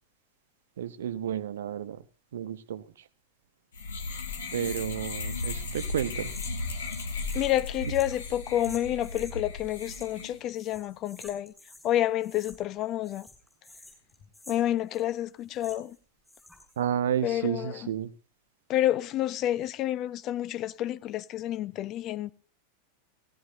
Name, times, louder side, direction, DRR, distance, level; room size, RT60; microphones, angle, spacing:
voice 1, 0.8-2.0 2.3-2.8 4.5-6.3 16.8-18.1, right 9 dB, 60° right, 1.1 m, -31 dB
sound 1, 3.7-10.4, left 3 dB, 65° left, 3.2 m, -36 dB
sound 2, 5.3-9.4 9.8-10.3 10.5-11.9 12.2-12.8 13.0-16.0 16.2-16.8, left 2 dB, ahead, 7.3 m, -50 dB
voice 2, 7.3-11.5 11.8-13.3 14.5-16.0 17.2-17.9 18.7-22.3, left 13 dB, 35° left, 1.0 m, -29 dB
19.5 x 17.5 x 2.8 m
figure-of-eight pair, 90°, 0 cm